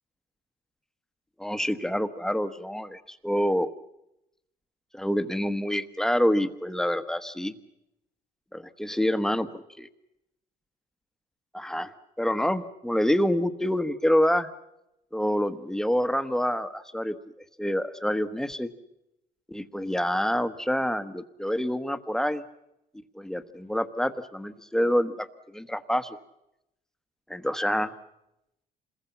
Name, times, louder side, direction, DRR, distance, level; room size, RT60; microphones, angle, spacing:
voice 1, 1.4-3.7 4.9-7.5 8.5-9.9 11.5-14.5 15.1-17.2 17.6-18.7 19.5-22.4 23.1-25.3 25.5-26.2 27.3-27.9, equal, 5° left, 10 dB, 1.2 m, -27 dB
27.0 x 21.5 x 7.2 m, 0.87 s
cardioid pair, 110°, 17 cm